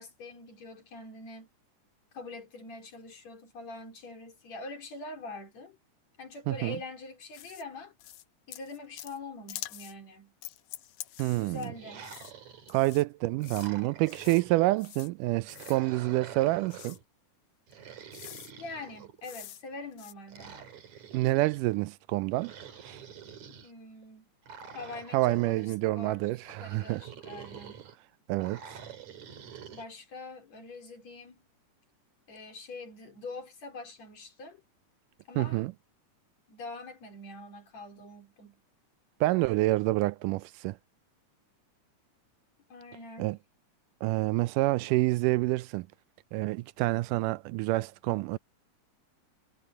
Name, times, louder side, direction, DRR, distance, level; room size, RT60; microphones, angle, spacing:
voice 1, 0.0-1.5 2.1-5.8 6.2-7.9 8.5-10.3 11.3-12.1 18.6-20.6 23.6-24.3 24.7-26.3 26.6-27.8 29.7-31.4 32.3-34.6 35.3-35.7 36.5-38.6 42.7-43.4 44.8-44.9, left 2 dB, 55° left, 5.2 m, -44 dB
voice 2, 6.5-6.8 11.2-11.7 12.7-17.0 21.1-22.5 22.9-23.0 25.1-27.0 28.3-28.8 35.4-35.7 39.2-40.8 43.2-43.4 44.0-45.9 46.3-48.4, right 19 dB, 85° right, 2.1 m, -28 dB
sound 1, 7.3-7.6 8.0-8.2 8.5-9.2 9.5-9.9 10.4-11.7 12.0-12.3 12.7-13.0 13.4-13.7 14.1-14.4 14.8-15.1 15.5-15.8 16.7-17.0 17.7-17.8 18.1-18.5 19.2-19.6 19.9-20.1, left 14 dB, 75° left, 2.2 m, -45 dB
sound 2, 11.7-12.9 13.4-14.8 15.4-17.0 17.7-19.4 20.3-21.6 22.3-23.7 24.4-25.8 26.4-27.9 28.4-29.9, right 7 dB, 60° right, 3.9 m, -47 dB
omnidirectional pair, 3.7 m